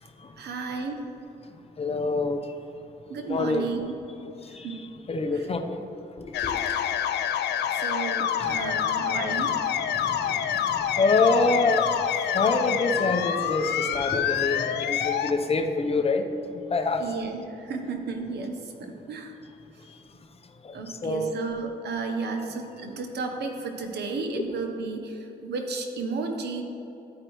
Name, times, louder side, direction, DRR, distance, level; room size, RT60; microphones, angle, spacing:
voice 1, 0.4-0.9 3.1-4.0 4.6-4.8 5.3-5.5 6.6-6.9 7.7-9.6 17.0-18.6 18.9-19.3 20.7-26.6, right 4 dB, 75° right, 4 dB, 1.0 m, -33 dB
voice 2, 1.8-2.4 3.3-3.7 4.4-4.8 5.1-5.8 6.2-6.8 8.4-8.6 9.9-16.3 16.5-17.0 20.6-21.3, left 3 dB, 35° left, 6 dB, 0.8 m, -26 dB
sound 1, 6.3-15.3, left 9 dB, 80° left, 0.4 m, -27 dB
12.5 x 4.7 x 3.1 m, 2.9 s
cardioid pair, 70°, 17 cm